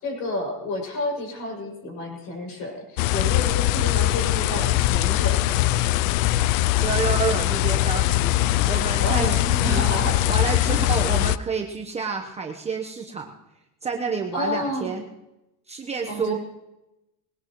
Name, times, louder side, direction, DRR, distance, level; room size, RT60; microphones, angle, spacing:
voice 1, 0.0-5.9 9.0-10.2 10.7-10.8 14.3-15.0 16.1-16.4, left 1 dB, 50° left, 0 dB, 7.1 m, -30 dB
sound 1, 3.0-11.4, left 15 dB, 85° left, 0.5 m, -21 dB
voice 2, 6.8-10.0 10.3-13.3 13.8-15.0 15.7-16.3, right 5 dB, 15° right, 2 dB, 1.1 m, -29 dB
20.5 x 18.0 x 3.1 m, 0.94 s
supercardioid pair, 130°, 38 cm